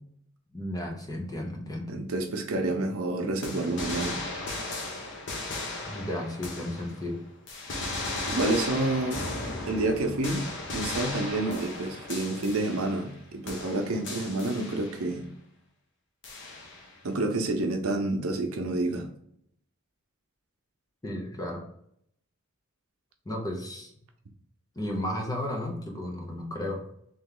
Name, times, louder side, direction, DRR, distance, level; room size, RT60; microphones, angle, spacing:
voice 1, 0.5-1.9 5.9-7.2 21.0-21.6 23.2-23.9 24.7-26.8, left 1 dB, 20° left, 1 dB, 0.8 m, -33 dB
voice 2, 1.9-4.2 8.2-9.2 9.6-10.5 10.7-15.2 17.0-19.1, right 2 dB, 85° right, 4 dB, 0.7 m, -29 dB
sound 1, 3.4-7.1 7.5-13.2 13.5-15.1 16.2-17.0, left 2 dB, 60° left, 0.9 m, -36 dB
3.5 x 3.0 x 3.7 m, 0.70 s
head